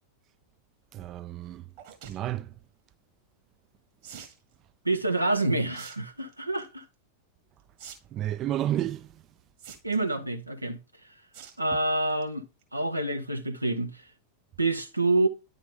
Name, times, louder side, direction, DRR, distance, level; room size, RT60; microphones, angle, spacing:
voice 1, 0.9-1.6 2.1-2.5 8.1-9.1, right 12 dB, 35° right, 0.3 m, -31 dB
sound 1, 1.8-2.2 4.0-4.4 5.7-6.0 6.3-6.7 7.8-7.9 8.2-8.3 9.6-10.1 11.3-11.6 12.0-12.2 12.6-12.7 12.9-13.0, right 8 dB, 50° right, 1.9 m, -45 dB
voice 2, 4.8-6.8 9.8-10.8 11.6-12.4 12.7-14.0 14.6-15.3, right 2 dB, 85° right, 0.8 m, -27 dB
10.0 x 3.6 x 3.8 m
figure-of-eight pair, 90°, 0 cm